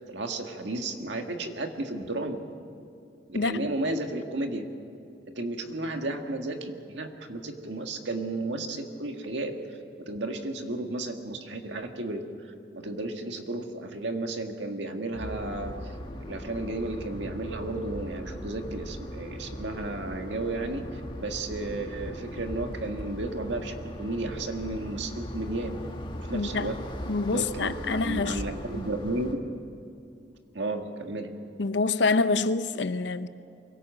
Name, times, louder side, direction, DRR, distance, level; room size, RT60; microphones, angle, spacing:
voice 1, 0.1-2.4 3.3-4.6 5.4-9.5 10.0-15.9 16.3-25.7 26.2-26.8 27.3-29.4 30.5-31.3, right 2 dB, 80° right, 1.8 m, -33 dB
voice 2, 3.3-3.7 26.3-26.8 27.1-28.4 31.6-33.3, left 3 dB, 80° left, 0.7 m, -26 dB
sound 1, 15.1-29.4, equal, 30° left, 1.7 m, -39 dB
24.0 x 17.0 x 7.7 m
head